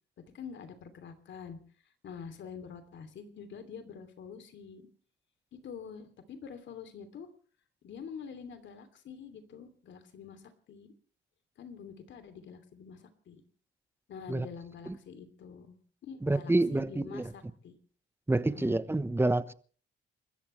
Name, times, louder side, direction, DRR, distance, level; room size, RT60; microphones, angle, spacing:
voice 1, 0.3-1.6 2.0-4.9 5.5-7.3 7.8-10.9 11.6-13.4 14.1-15.8 16.0-17.8 18.4-18.8, left 6 dB, 70° left, 3.0 m, -46 dB
voice 2, 16.2-17.3 18.3-19.5, right 2 dB, 10° right, 1.1 m, -28 dB
29.0 x 14.0 x 3.3 m
cardioid pair, 90°, 20 cm